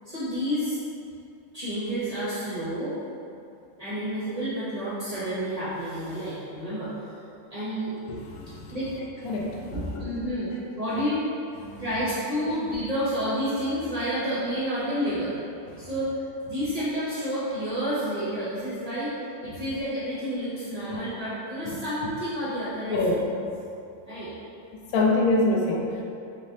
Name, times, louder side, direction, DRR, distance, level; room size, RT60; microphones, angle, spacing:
voice 1, 0.1-0.8 1.5-2.9 3.8-6.9 7.5-8.2 8.5-8.9 9.7-11.2 11.8-15.4 15.8-16.2 16.5-19.1 19.4-23.0 24.0-24.3, equal, 45° right, -11 dB, 0.4 m, -30 dB
voice 2, 8.0-10.1 11.6-12.0 15.7-15.9 19.4-19.6 20.9-21.0 21.6-21.8 22.9-23.2 24.9-26.0, left 2 dB, 75° left, -2 dB, 0.8 m, -27 dB
4.0 x 3.1 x 2.7 m, 2.6 s
omnidirectional pair, 2.0 m